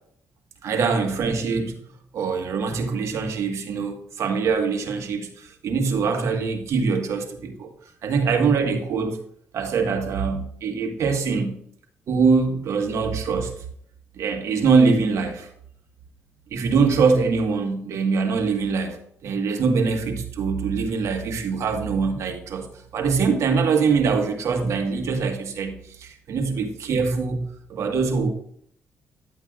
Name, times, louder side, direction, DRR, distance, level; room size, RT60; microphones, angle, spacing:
voice 1, 0.6-7.7 8.0-9.2 9.5-11.6 12.1-13.5 14.2-15.5 16.5-28.3, right 5 dB, 70° right, 4 dB, 1.5 m, -23 dB
10.5 x 8.0 x 2.4 m, 0.67 s
cardioid pair, 85°, 5 cm